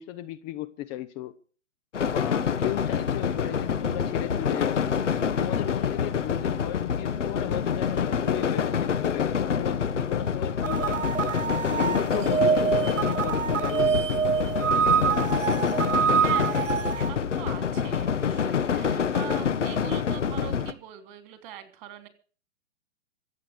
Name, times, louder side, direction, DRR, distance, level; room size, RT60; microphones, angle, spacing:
voice 1, 0.0-1.3 2.1-4.8 5.4-11.3 11.7-14.2, left 14 dB, 20° left, 0.6 m, -35 dB
sound 1, 1.9-20.7, left 7 dB, 65° left, 1.5 m, -27 dB
sound 2, 10.6-17.1, right 7 dB, 70° right, 1.3 m, -25 dB
voice 2, 16.2-22.1, right 11 dB, 40° right, 3.2 m, -42 dB
25.0 x 8.7 x 4.9 m
figure-of-eight pair, 115°, 38 cm